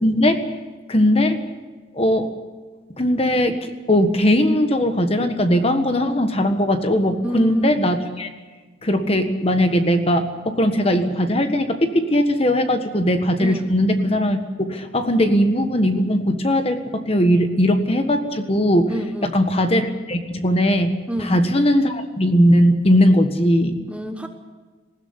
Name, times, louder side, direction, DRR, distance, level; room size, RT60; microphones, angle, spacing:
voice 1, 0.0-0.4 0.9-1.4 1.9-2.3 3.0-8.3 8.8-18.9 19.2-20.9 21.2-23.8, equal, 30° left, 7 dB, 1.5 m, -19 dB
voice 2, 7.2-7.7 13.4-13.7 18.9-19.4 21.1-21.3 23.9-24.3, equal, 5° right, 5 dB, 1.1 m, -27 dB
20.0 x 16.0 x 9.8 m, 1.3 s
head